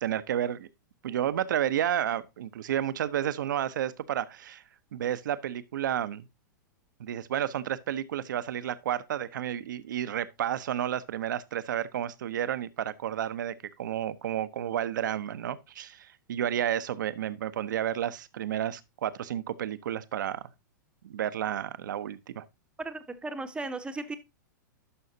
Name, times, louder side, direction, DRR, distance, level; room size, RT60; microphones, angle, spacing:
voice 1, 0.0-0.7 1.0-4.6 4.9-6.3 7.0-20.5 21.0-22.4, right 10 dB, 75° right, 0.7 m, -31 dB
voice 2, 22.8-24.2, right 2 dB, 10° right, 0.8 m, -36 dB
11.0 x 5.6 x 2.7 m
hypercardioid pair, 115°, 11 cm